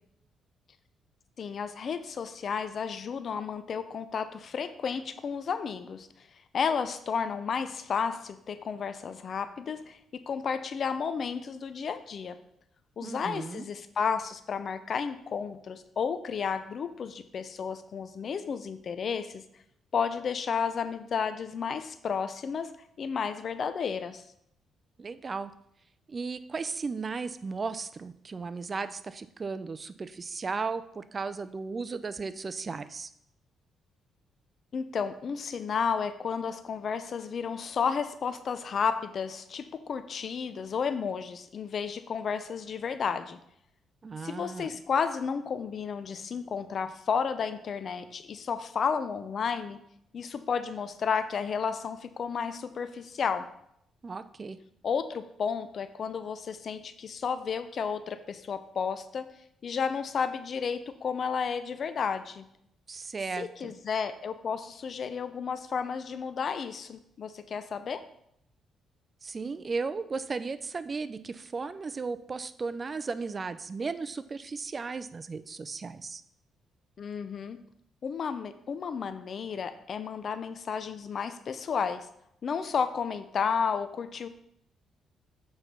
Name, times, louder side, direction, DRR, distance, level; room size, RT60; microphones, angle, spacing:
voice 1, 1.4-6.3 6.5-12.4 13.0-19.4 19.9-22.7 23.0-24.2 34.7-43.4 44.2-49.8 50.1-53.5 54.8-59.3 59.6-62.5 63.4-68.0 77.0-77.6 78.0-82.1 82.4-84.3, left 6 dB, 50° left, 11 dB, 0.5 m, -32 dB
voice 2, 13.0-13.6 25.0-25.5 26.1-33.1 44.0-44.8 54.0-54.6 62.9-63.7 69.2-76.2, right 4 dB, 35° right, 12 dB, 0.5 m, -35 dB
7.8 x 4.5 x 5.3 m, 0.74 s
cardioid pair, 90°, 0 cm